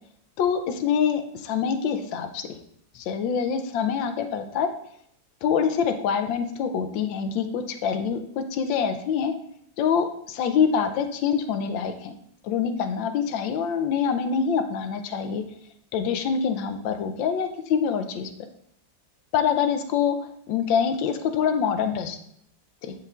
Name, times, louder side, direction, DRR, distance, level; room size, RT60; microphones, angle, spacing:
voice 1, 0.4-2.5 2.9-4.7 5.4-9.3 9.8-12.2 12.4-15.4 15.9-18.3 19.3-20.2 20.5-22.2 22.8-22.9, left 7 dB, 85° left, 8 dB, 1.4 m, -25 dB
10.5 x 4.6 x 2.4 m, 0.70 s
omnidirectional pair, 2.0 m